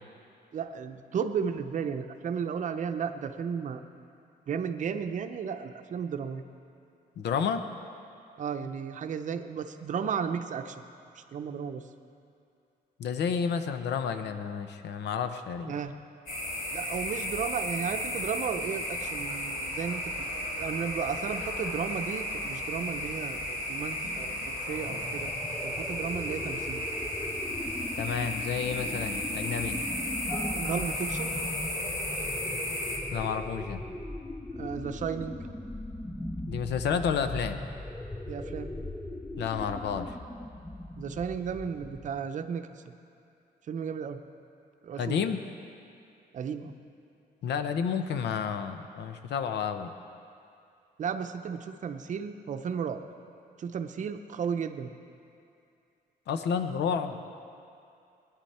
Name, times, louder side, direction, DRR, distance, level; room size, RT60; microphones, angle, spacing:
voice 1, 0.5-3.8 4.5-6.4 8.4-10.8 11.1-11.8 15.7-15.9 16.7-25.3 25.6-26.8 30.5-31.3 34.5-35.4 38.3-38.7 41.0-42.8 43.7-44.2 44.8-45.2 46.3-46.7 51.0-53.0 53.6-54.9, right 7 dB, 45° right, 7 dB, 0.7 m, -34 dB
voice 2, 7.2-7.6 13.0-15.7 28.0-29.8 33.1-33.8 36.5-37.6 39.4-40.1 45.0-45.4 47.4-49.9 56.3-57.2, left 7 dB, 80° left, 8 dB, 0.8 m, -30 dB
sound 1, 16.3-33.0, left 1 dB, 60° left, 3.0 m, -34 dB
sound 2, 24.7-42.3, left 1 dB, 5° left, 0.3 m, -39 dB
21.0 x 10.5 x 4.3 m, 2.5 s
wide cardioid pair, 175°, 17 cm